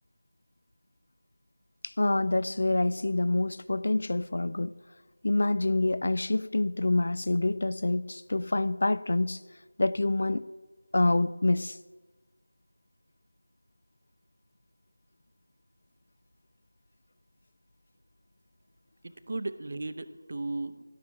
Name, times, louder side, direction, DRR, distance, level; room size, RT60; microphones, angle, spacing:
voice 1, 1.8-4.7 5.2-9.4 9.8-10.5 10.9-11.8, left 2 dB, 55° left, 0.3 m, -26 dB
voice 2, 19.0-20.8, right 2 dB, 45° right, 0.6 m, -36 dB
11.5 x 11.0 x 4.7 m
figure-of-eight pair, 175°, 0 cm